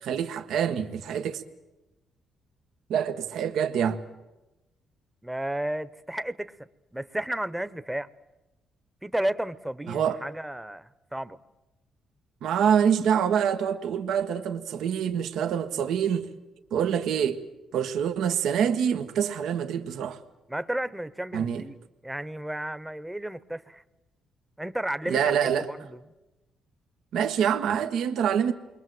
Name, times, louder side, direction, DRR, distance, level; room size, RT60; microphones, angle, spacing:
voice 1, 0.0-1.4 2.9-4.0 9.9-10.2 12.4-16.3 16.7-17.4 17.7-20.2 21.3-21.6 25.1-25.7 27.1-28.5, right 8 dB, 80° right, 1.4 m, -26 dB
voice 2, 5.2-8.1 9.0-11.4 20.5-21.8 22.0-23.8 24.6-26.0, right 1 dB, 5° right, 1.0 m, -33 dB
28.5 x 22.5 x 7.9 m
cardioid pair, 90°, 0 cm